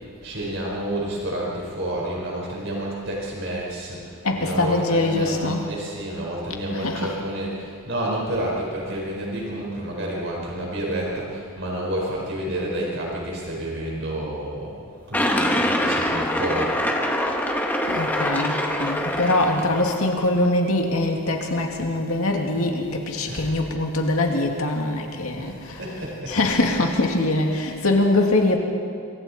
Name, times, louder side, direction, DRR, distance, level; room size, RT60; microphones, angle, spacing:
voice 1, 0.2-16.8 23.3-23.6 25.4-26.4, right 1 dB, 55° right, -3 dB, 4.8 m, -30 dB
voice 2, 4.2-5.7 6.7-7.1 17.9-25.8 26.3-28.6, left 2 dB, 75° left, 2 dB, 2.3 m, -23 dB
sound 1, 15.1-20.1, left 1 dB, 10° left, 1.6 m, -24 dB
27.0 x 24.5 x 4.3 m, 2.5 s
head